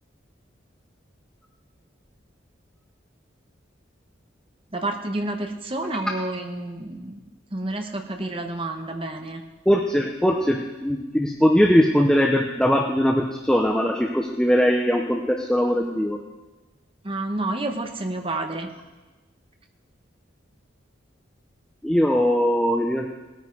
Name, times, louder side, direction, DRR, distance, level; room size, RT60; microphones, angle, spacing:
voice 1, 4.7-7.2 7.5-9.4 17.0-18.7, right 2 dB, 30° right, 4 dB, 1.2 m, -29 dB
voice 2, 9.7-16.2 21.8-23.1, equal, 5° left, 1 dB, 0.7 m, -20 dB
18.5 x 9.3 x 4.8 m, 1.2 s
head